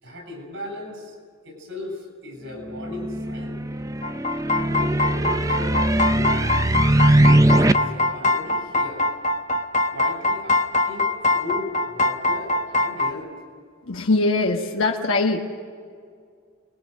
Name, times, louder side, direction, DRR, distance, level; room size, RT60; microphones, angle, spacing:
voice 1, 0.0-1.2 1.4-3.5 4.3-6.4 7.6-9.0 9.9-10.6 10.9-13.3, left 2 dB, 60° right, 4 dB, 7.1 m, -36 dB
sound 1, 2.7-7.7, right 1 dB, 15° right, 0.5 m, -20 dB
sound 2, 4.0-13.1, left 2 dB, 35° left, 1.0 m, -23 dB
voice 2, 13.9-15.4, left 2 dB, 65° left, 0 dB, 1.3 m, -21 dB
26.5 x 22.0 x 6.4 m, 2.1 s
head